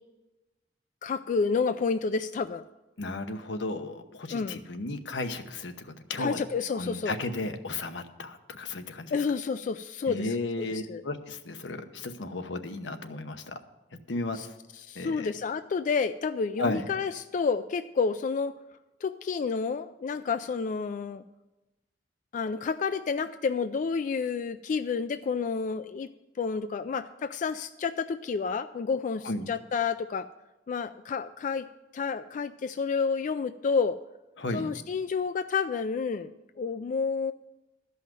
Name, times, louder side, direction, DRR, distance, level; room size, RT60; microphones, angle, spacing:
voice 1, 1.0-2.6 4.3-4.6 6.2-7.2 9.1-10.3 10.7-11.0 14.3-14.5 14.8-18.6 19.0-21.2 22.3-26.1 26.4-30.3 30.7-31.7 31.9-34.0 34.5-36.3 36.6-37.3, left 5 dB, 45° left, 11 dB, 0.3 m, -30 dB
voice 2, 3.0-6.4 6.7-9.2 10.1-13.6 14.1-14.4 14.9-15.3 16.6-16.8 29.2-29.5 34.4-34.7, left 2 dB, 85° left, 8 dB, 0.9 m, -34 dB
13.0 x 5.6 x 7.6 m, 1.1 s
head